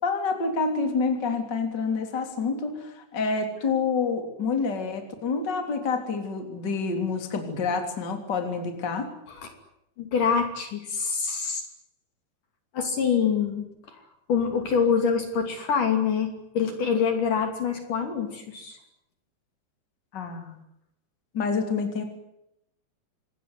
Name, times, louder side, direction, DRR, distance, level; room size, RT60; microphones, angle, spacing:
voice 1, 0.0-9.1 20.1-20.6 21.3-22.0, left 4 dB, 25° left, 5 dB, 3.3 m, -28 dB
voice 2, 10.0-11.6 12.7-14.0 14.3-18.8, left 6 dB, 50° left, 5 dB, 4.1 m, -25 dB
26.5 x 19.0 x 9.8 m, 0.82 s
omnidirectional pair, 5.0 m